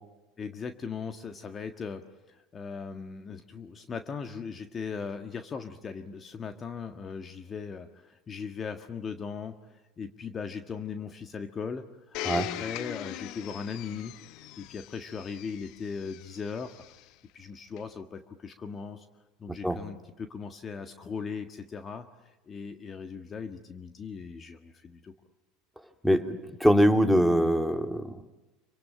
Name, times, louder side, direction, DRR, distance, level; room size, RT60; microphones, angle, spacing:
voice 1, 0.4-14.1 14.6-16.8 17.3-19.1 19.4-25.1, left 5 dB, 30° left, 7 dB, 1.6 m, -39 dB
Domestic sounds home sounds, 12.1-17.0 17.8-17.9, left 15 dB, 55° left, 0.9 m, -40 dB
voice 2, 26.0-28.2, equal, ahead, 6 dB, 2.4 m, -23 dB
26.5 x 25.0 x 8.9 m, 1.1 s
hypercardioid pair, 80°, 0 cm